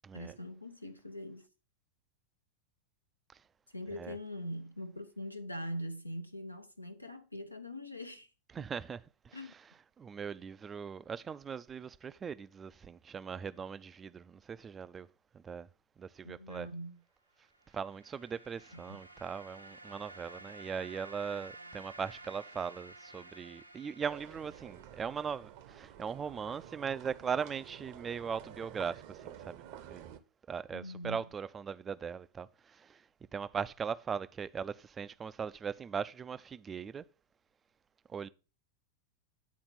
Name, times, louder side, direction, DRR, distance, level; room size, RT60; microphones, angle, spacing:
voice 1, 0.1-1.4 3.7-8.3 9.3-9.5 16.2-17.0 18.7-19.0 30.7-31.2, equal, 90° left, 0.9 m, -42 dB
voice 2, 8.5-9.0 9.3-9.4 10.0-15.1 15.4-15.7 16.0-16.7 17.7-29.6 29.9-30.1 30.5-33.0 33.3-37.0 38.1-38.3, right 6 dB, 20° right, 0.4 m, -39 dB
sound 1, 17.5-25.3, right 2 dB, 85° right, 0.6 m, -53 dB
sound 2, 24.0-30.2, right 11 dB, 45° right, 0.8 m, -50 dB
9.5 x 4.2 x 5.7 m
figure-of-eight pair, 90°, 0 cm